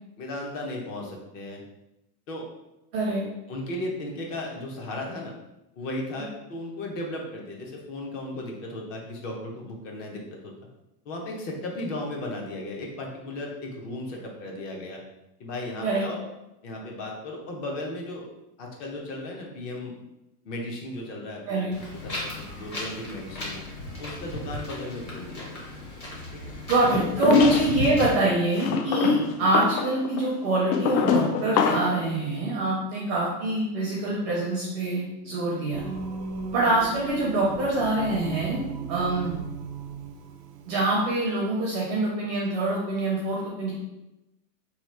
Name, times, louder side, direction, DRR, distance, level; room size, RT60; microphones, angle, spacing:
voice 1, 0.2-1.6 2.3-2.4 3.5-5.3 5.8-10.5 11.0-15.0 15.4-16.2 16.6-18.3 18.6-19.9 20.4-21.7 22.0-23.6 24.0-25.5 26.3-26.5 26.8-27.5 28.8-28.9, left 1 dB, 50° left, 0 dB, 0.9 m, -35 dB
voice 2, 21.5-21.8 26.7-35.8 36.5-39.3 40.7-43.7, right 2 dB, 25° right, -5 dB, 0.4 m, -25 dB
Wind, 21.7-28.1, left 2 dB, 25° left, 0.7 m, -35 dB
sound 1, 26.9-27.9 28.6-32.0, left 5 dB, 80° left, 0.6 m, -24 dB
Singing, 35.7-41.2, right 5 dB, 90° right, 0.7 m, -37 dB
3.0 x 2.4 x 4.3 m, 0.93 s
supercardioid pair, 160°, 49 cm